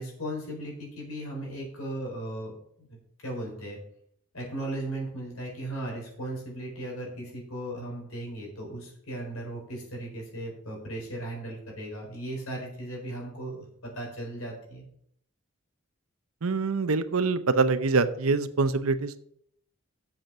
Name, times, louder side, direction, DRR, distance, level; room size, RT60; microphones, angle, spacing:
voice 1, 0.0-2.5 2.8-3.8 4.3-14.8, right 1 dB, 85° left, -1 dB, 4.4 m, -37 dB
voice 2, 16.4-19.2, right 4 dB, 85° right, 12 dB, 0.7 m, -25 dB
7.9 x 7.2 x 6.1 m, 0.70 s
head